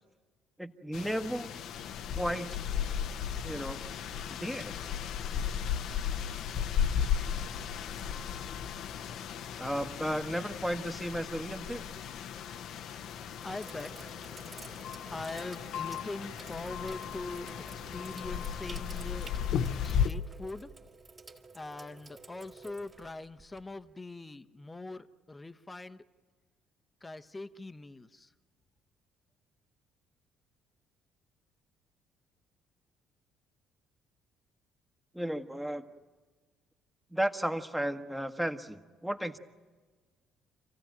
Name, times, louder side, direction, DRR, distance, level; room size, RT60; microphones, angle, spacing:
voice 1, 0.6-1.5 2.1-2.7 3.4-3.8 4.3-4.7 9.6-11.8 35.1-35.9 37.1-39.4, equal, 5° right, 6 dB, 1.3 m, -34 dB
sound 1, 0.9-20.1, left 8 dB, 65° left, 0.9 m, -35 dB
Sink (filling or washing), 13.0-23.9, right 3 dB, 40° right, 2.5 m, -52 dB
voice 2, 13.4-14.1 15.1-19.3 19.8-20.7 21.5-26.0 27.0-28.3, left 2 dB, 20° left, 10 dB, 1.0 m, -42 dB
27.0 x 15.5 x 9.2 m, 1.4 s
hypercardioid pair, 50°, 0 cm